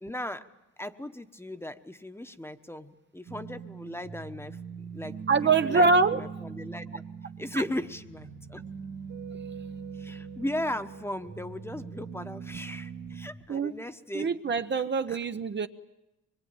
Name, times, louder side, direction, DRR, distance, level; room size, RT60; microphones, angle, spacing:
voice 1, 0.0-0.5 0.8-4.6 4.9-7.0 7.4-8.6 9.9-14.4 15.1-15.2, left 1 dB, 10° left, 9 dB, 1.2 m, -37 dB
sound 1, 3.3-13.3, right 6 dB, 80° right, 2.7 m, -41 dB
voice 2, 5.3-6.2 7.5-7.6 13.5-13.7 14.1-15.7, right 4 dB, 35° right, 8 dB, 0.9 m, -24 dB
24.0 x 22.5 x 8.9 m, 0.96 s
cardioid pair, 90°, 30 cm